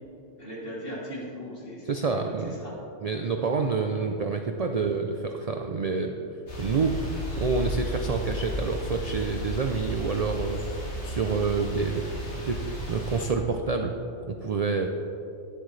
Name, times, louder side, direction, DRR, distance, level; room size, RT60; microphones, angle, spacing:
voice 1, 0.4-2.7 3.4-3.6, equal, 50° left, -7 dB, 3.0 m, -39 dB
voice 2, 1.9-2.6 3.0-6.1 6.6-7.0 7.4-10.6 11.0-12.0 12.3-14.0 14.3-14.9, right 4 dB, 50° right, 4 dB, 0.5 m, -28 dB
sound 1, 6.5-13.3, equal, 80° left, 2.1 m, -34 dB
11.5 x 10.0 x 3.2 m, 2.7 s
omnidirectional pair, 1.2 m